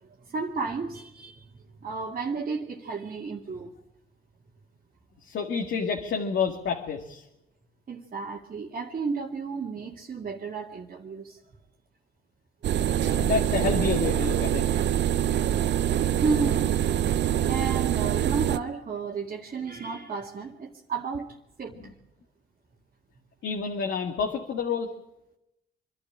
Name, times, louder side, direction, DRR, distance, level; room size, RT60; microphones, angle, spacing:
voice 1, 0.0-3.7 7.9-11.4 16.2-16.9 17.5-21.3 21.6-21.8, right 4 dB, 45° right, -3 dB, 2.2 m, -32 dB
voice 2, 5.2-7.2 12.9-14.7 23.4-24.9, left 5 dB, 70° left, 1 dB, 2.2 m, -29 dB
sound 1, 12.6-18.6, right 10 dB, 65° right, 0.9 m, -25 dB
25.0 x 12.0 x 10.0 m, 0.89 s
cardioid pair, 90°, 20 cm